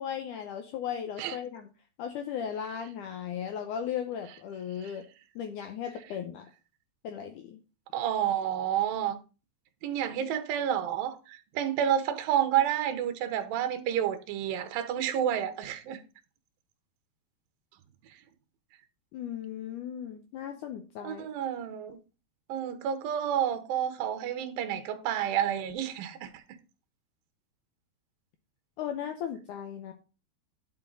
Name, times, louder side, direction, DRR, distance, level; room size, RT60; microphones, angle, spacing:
voice 1, 0.0-1.7 2.0-5.0 5.4-6.5 7.0-7.6 19.1-21.3 28.8-29.9, left 8 dB, 85° left, 1.8 m, -36 dB
voice 2, 7.9-9.2 9.8-16.0 21.0-22.0 22.5-26.4, right 10 dB, 70° right, 2.6 m, -30 dB
10.5 x 5.8 x 3.9 m
omnidirectional pair, 4.5 m